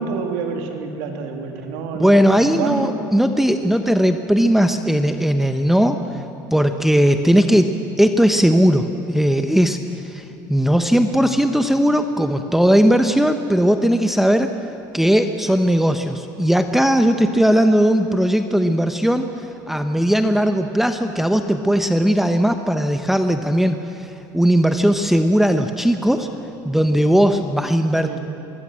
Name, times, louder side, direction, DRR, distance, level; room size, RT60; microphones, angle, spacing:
voice 1, 0.0-3.0 28.0-28.2, right 5 dB, 80° right, 3 dB, 3.0 m, -28 dB
voice 2, 2.0-6.2 6.5-14.5 14.9-19.3 19.7-26.3 26.6-28.2, equal, 5° right, 7 dB, 1.1 m, -18 dB
24.0 x 20.5 x 7.7 m, 2.8 s
supercardioid pair, 90°, 10 cm